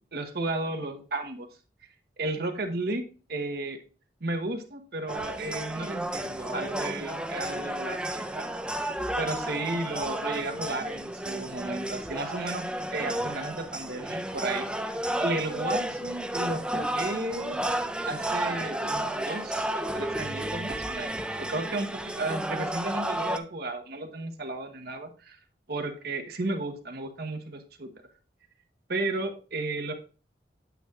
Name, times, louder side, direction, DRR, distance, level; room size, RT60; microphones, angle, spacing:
voice 1, 0.1-1.5 2.2-3.0 3.3-3.8 4.2-8.4 9.2-12.6 12.9-17.6 18.1-21.2 21.5-25.4 25.7-27.9 28.9-29.9, right 2 dB, 60° right, 5 dB, 1.0 m, -33 dB
sound 1, 5.1-23.4, right 1 dB, 5° right, 0.4 m, -32 dB
9.2 x 7.9 x 2.3 m, 0.37 s
head